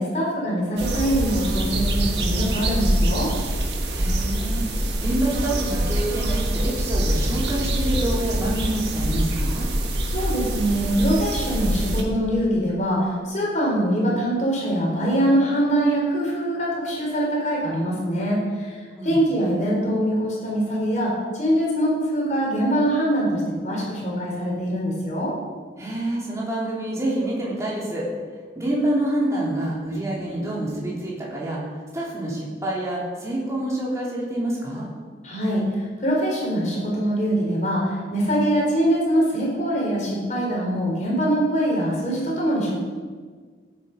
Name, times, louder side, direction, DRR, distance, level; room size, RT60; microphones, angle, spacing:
voice 1, 0.0-3.3 10.1-25.3 35.2-42.8, equal, 45° left, -3 dB, 3.8 m, -23 dB
sound 1, 0.8-12.0, right 1 dB, 75° right, 1.6 m, -24 dB
voice 2, 3.9-9.7 19.0-19.3 25.8-28.1 28.5-31.6 31.9-34.9, right 1 dB, 15° right, -5 dB, 3.1 m, -27 dB
15.5 x 8.6 x 5.1 m, 1.5 s
head